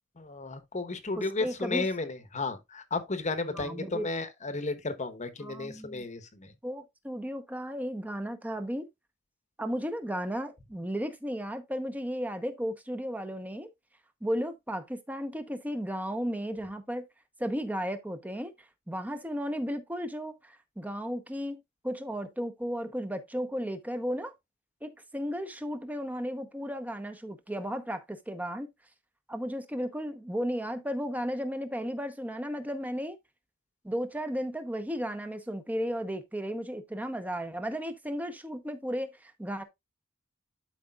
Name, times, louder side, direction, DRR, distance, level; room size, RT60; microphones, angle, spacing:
voice 1, 0.2-6.5, left 3 dB, 35° left, 1.1 m, -33 dB
voice 2, 1.2-1.9 3.5-4.1 5.4-6.0 6.6-8.9 9.6-13.7 14.2-17.0 17.4-18.5 18.9-24.3 24.8-28.7 29.3-33.2 33.8-39.6, equal, 10° right, 0.8 m, -34 dB
12.0 x 5.0 x 2.4 m
head